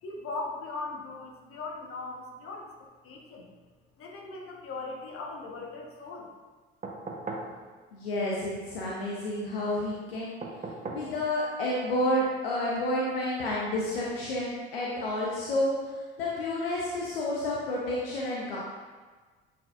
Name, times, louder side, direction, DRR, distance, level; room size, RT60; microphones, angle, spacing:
voice 1, 0.0-2.7 3.0-3.5 4.0-6.3, left 3 dB, 50° left, -1 dB, 1.4 m, -39 dB
sound 1, 6.8-7.5 10.4-11.1 12.7-12.8, right 3 dB, 25° right, 1.0 m, -37 dB
voice 2, 7.9-10.4 10.9-15.7 16.2-18.6, left 1 dB, 75° left, -5 dB, 0.9 m, -30 dB
9.2 x 4.6 x 2.6 m, 1.4 s
figure-of-eight pair, 50°, 29 cm